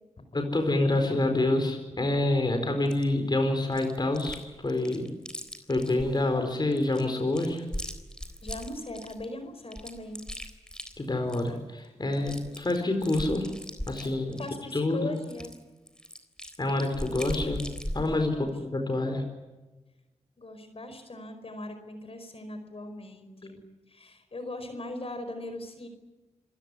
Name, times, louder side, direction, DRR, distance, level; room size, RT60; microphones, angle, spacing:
voice 1, 0.3-5.1 5.7-7.7 11.0-13.5 13.9-14.4 14.7-15.1 16.6-17.6 17.9-19.2, left 2 dB, 35° left, 5 dB, 4.4 m, -27 dB
Chewing mastication, 2.9-3.0 3.7-4.4 4.7-6.2 6.7-9.3 9.7-11.6 11.8-11.9 12.1-14.6 15.2-18.2, equal, 5° left, 3.8 m, -39 dB
voice 2, 8.4-10.2 14.4-15.5 18.3-18.5 20.4-23.6 23.9-25.9, left 1 dB, 55° left, 8 dB, 4.9 m, -40 dB
27.0 x 16.5 x 9.8 m, 1.1 s
wide cardioid pair, 70°, 12 cm